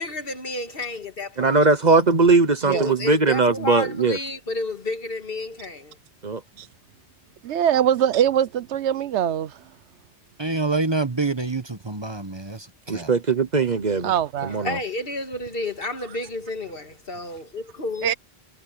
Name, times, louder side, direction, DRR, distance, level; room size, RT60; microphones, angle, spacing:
voice 1, 0.0-1.6 2.7-6.0 14.4-18.1, left 2 dB, 55° left, 2.1 m, -31 dB
voice 2, 1.4-4.2 6.2-6.4 12.9-14.1 14.4-14.8, right 3 dB, 40° right, 1.0 m, -20 dB
voice 3, 7.4-9.5 14.0-14.6 18.0-18.1, right 10 dB, 80° right, 0.9 m, -22 dB
voice 4, 10.4-13.1, right 3 dB, 25° right, 1.1 m, -27 dB
omnidirectional pair, 1.2 m